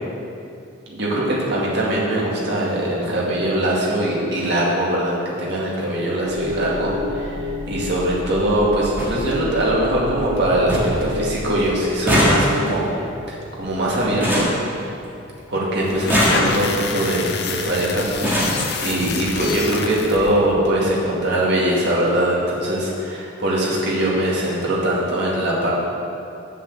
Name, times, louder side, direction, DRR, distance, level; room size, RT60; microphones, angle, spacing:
voice 1, 0.9-12.9 13.3-14.5 15.5-25.7, right 1 dB, 55° right, -5 dB, 2.3 m, -22 dB
sound 1, 6.2-11.7, left 1 dB, 85° right, 0.8 m, -29 dB
sound 2, 7.0-7.1 8.3-8.4 8.6-8.7 9.0-9.2 9.6-10.1 10.4-10.5 10.7-11.1 11.3-15.3 15.9-16.9 17.7-17.8 18.1-18.7 19.6-19.7 20.0-20.2 20.5-20.6, equal, 10° right, 1.8 m, -22 dB
sound 3, 15.9-20.3, left 4 dB, 50° left, 0.8 m, -27 dB
7.4 x 7.3 x 7.0 m, 2.6 s
head